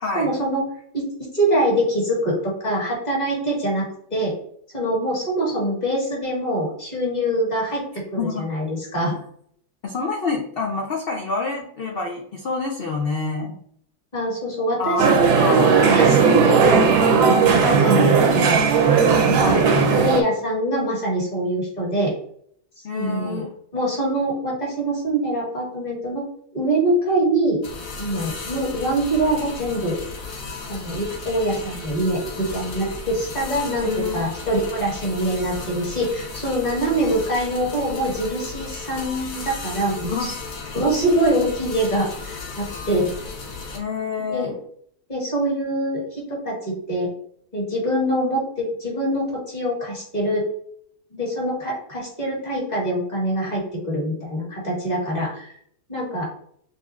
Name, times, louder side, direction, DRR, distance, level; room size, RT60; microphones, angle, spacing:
voice 1, 0.1-0.6 0.9-4.3 4.7-7.8 8.1-9.2 14.1-18.6 19.2-19.6 19.9-22.1 22.9-23.4 23.7-26.2 26.5-27.6 28.0-30.0 30.7-40.3 40.7-43.1 44.3-44.5 45.1-47.1 47.5-50.5 51.1-55.5 55.9-56.3, right 1 dB, 25° left, -4 dB, 1.5 m, -24 dB
voice 2, 8.2-8.5 9.8-13.6 14.8-15.1 15.3-15.8 19.3-19.7 22.8-23.5 33.8-34.2 40.0-40.3 43.7-44.5, left 4 dB, 80° left, 1 dB, 0.5 m, -27 dB
sound 1, 15.0-20.2, right 5 dB, 75° right, 1.1 m, -16 dB
sound 2, 27.6-43.8, left 4 dB, 60° left, 1.2 m, -35 dB
6.3 x 2.7 x 2.3 m, 0.65 s
omnidirectional pair, 1.8 m